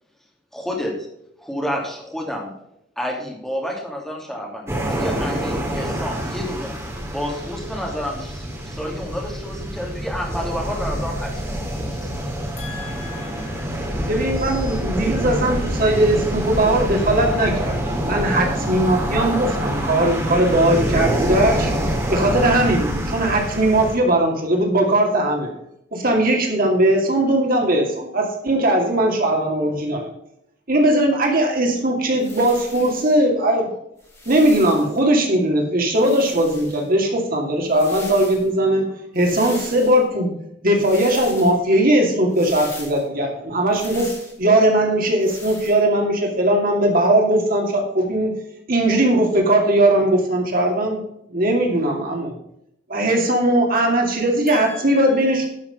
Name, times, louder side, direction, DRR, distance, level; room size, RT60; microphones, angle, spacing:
voice 1, 0.5-0.9 1.4-2.5 3.0-6.7 7.1-12.3, equal, ahead, -2 dB, 2.8 m, -30 dB
sound 1, 4.7-24.0, equal, 15° right, 2.3 m, -26 dB
voice 2, 12.6-14.1 54.5-55.5, left 6 dB, 35° left, -2 dB, 4.0 m, -39 dB
voice 3, 14.1-21.7 22.1-25.5 25.9-30.1 30.7-33.7 34.3-40.3 40.6-44.1 44.4-48.3 48.7-51.0 51.3-52.3 52.9-55.5, right 1 dB, 50° right, 1 dB, 2.3 m, -19 dB
sound 2, 32.2-33.1 34.0-35.0 35.9-36.9 37.6-38.5 39.1-40.0 40.8-41.6 42.3-43.0 43.7-44.4 45.2-45.8, left 2 dB, 15° left, 3.6 m, -39 dB
11.5 x 5.9 x 5.5 m, 0.78 s
head